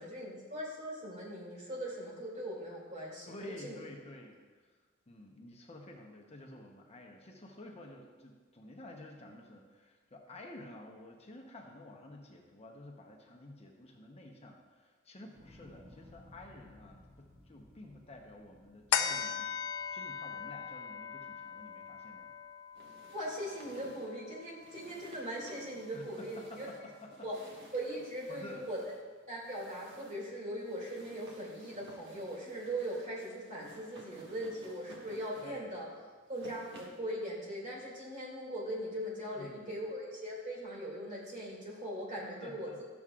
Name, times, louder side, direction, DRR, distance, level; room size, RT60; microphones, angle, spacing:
voice 1, 0.0-3.8 23.1-26.7 27.2-27.3 27.7-28.8 29.3-35.9 36.3-42.8, right 1 dB, 35° right, -4 dB, 2.5 m, -40 dB
voice 2, 3.3-4.4 5.1-22.3 25.9-27.3 28.3-28.7 35.4-35.7 39.3-39.8 42.2-42.8, left 1 dB, 30° left, 1 dB, 0.9 m, -51 dB
sound 1, 15.3-21.7 22.1-22.7, left 1 dB, 10° right, 1.5 m, -59 dB
sound 2, 18.9-25.7 26.1-26.2, left 8 dB, 90° left, 0.5 m, -39 dB
sound 3, 22.7-37.1, right 1 dB, 55° right, 1.5 m, -56 dB
12.5 x 7.1 x 2.4 m, 1.4 s
head